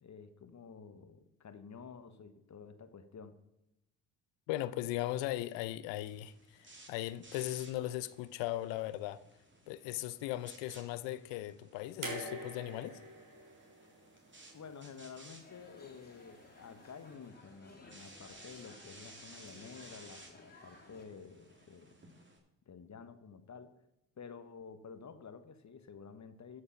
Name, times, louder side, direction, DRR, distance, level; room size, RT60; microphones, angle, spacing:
voice 1, 0.0-3.4 14.5-21.9 22.7-23.7 24.2-26.6, left 6 dB, 40° left, 1.2 m, -51 dB
voice 2, 4.5-9.2 9.7-13.0, left 15 dB, 75° left, 0.7 m, -38 dB
sound 1, 6.0-22.4, right 2 dB, 25° right, 3.1 m, -58 dB
sound 2, 12.0-15.2 16.4-16.5, right 2 dB, 45° right, 3.7 m, -45 dB
sound 3, 15.4-21.0, left 2 dB, 20° left, 2.9 m, -59 dB
12.5 x 6.6 x 5.8 m
hypercardioid pair, 55°, 44 cm